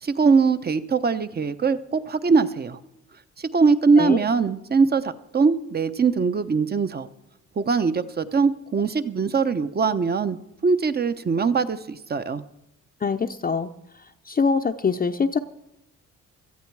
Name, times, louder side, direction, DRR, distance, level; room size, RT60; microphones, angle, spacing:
voice 1, 0.0-2.8 3.4-7.1 7.6-10.4 10.6-12.4, right 5 dB, 30° right, 12 dB, 1.0 m, -22 dB
voice 2, 13.0-13.7 14.2-15.4, left 5 dB, 30° left, 4 dB, 0.7 m, -23 dB
18.0 x 13.5 x 4.8 m, 0.88 s
cardioid pair, 90°, 30 cm